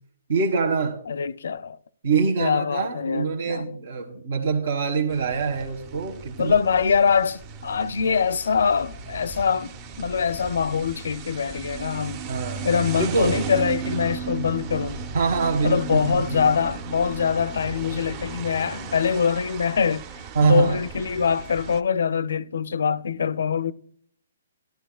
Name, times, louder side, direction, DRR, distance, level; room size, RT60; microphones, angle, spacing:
voice 1, 0.3-1.0 2.0-6.5 8.1-8.2 12.3-12.6 13.0-13.3 15.1-16.5 20.3-20.8, right 5 dB, 65° right, 1.3 m, -24 dB
voice 2, 1.1-1.8 2.4-3.7 6.4-12.3 12.6-15.0 15.6-20.1 20.4-23.7, left 6 dB, 75° left, 0.4 m, -24 dB
sound 1, 5.1-21.8, right 6 dB, 25° right, 0.7 m, -36 dB
13.5 x 11.5 x 2.3 m
hypercardioid pair, 160°, 0 cm